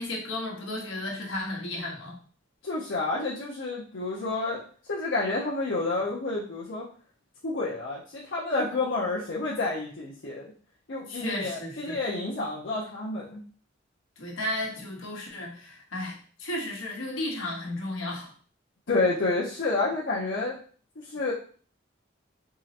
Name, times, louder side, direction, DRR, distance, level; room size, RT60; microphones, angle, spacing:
voice 1, 0.0-2.2 11.1-12.0 14.2-18.3, left 1 dB, 90° left, -1 dB, 1.2 m, -34 dB
voice 2, 2.6-4.6 4.9-6.8 7.4-10.5 10.9-13.4 18.9-20.6 21.0-21.3, left 3 dB, 70° left, -6 dB, 0.7 m, -29 dB
3.7 x 3.1 x 2.8 m, 0.42 s
head